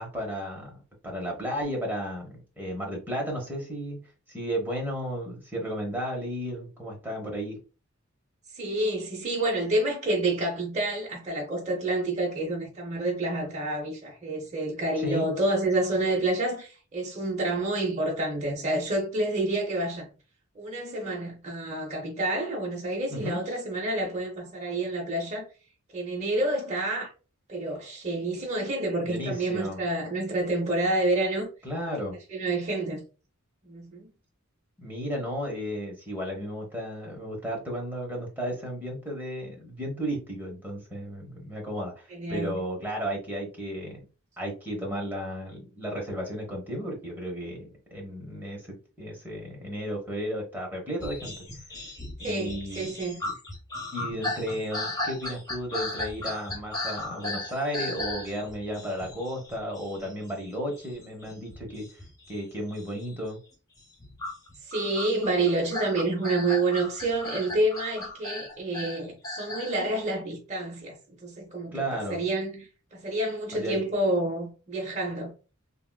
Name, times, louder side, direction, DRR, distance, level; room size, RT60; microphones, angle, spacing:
voice 1, 0.0-4.0 4.3-7.6 15.0-15.3 23.1-23.4 29.0-29.8 31.6-32.2 34.8-44.0 44.4-51.3 52.2-52.9 53.2-53.3 53.9-61.9 62.3-63.4 71.7-72.2 73.5-73.8, equal, 10° right, 0.9 m, -34 dB
voice 2, 8.5-20.1 20.6-25.4 25.9-27.1 27.5-31.5 32.3-33.0 33.6-34.1 42.1-42.6 52.2-53.2 64.7-75.3, right 2 dB, 35° right, 0.7 m, -28 dB
sound 1, 51.0-60.5 60.7-62.4 62.7-63.1 63.8-69.8, left 2 dB, 20° left, 1.3 m, -36 dB
3.5 x 2.4 x 2.2 m
head